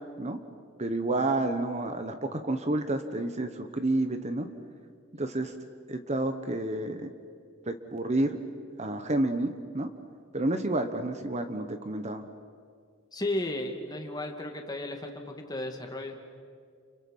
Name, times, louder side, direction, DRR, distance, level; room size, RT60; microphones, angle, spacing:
voice 1, 0.8-4.5 5.1-5.5 5.9-7.1 7.7-8.4 8.8-9.9 10.3-12.2, right 2 dB, 35° right, 8 dB, 1.2 m, -30 dB
voice 2, 13.1-16.1, left 1 dB, 20° left, 3 dB, 2.4 m, -34 dB
30.0 x 29.5 x 5.6 m, 2.1 s
head